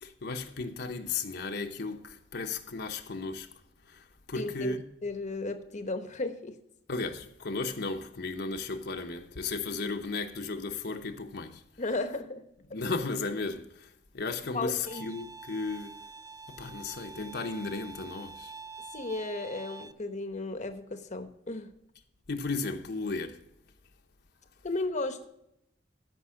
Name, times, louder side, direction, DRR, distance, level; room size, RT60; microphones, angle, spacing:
voice 1, 0.0-3.5 3.8-4.8 6.9-11.6 12.7-16.0 16.5-18.5 22.3-23.4, left 3 dB, 65° left, 0.9 m, -35 dB
voice 2, 4.3-4.8 5.0-6.6 11.8-12.4 14.5-15.0 18.9-21.7 24.6-25.3, left 2 dB, 40° left, 0.9 m, -34 dB
Bowed string instrument, 14.9-19.9, right 4 dB, 20° right, 0.4 m, -46 dB
14.0 x 5.4 x 6.3 m
head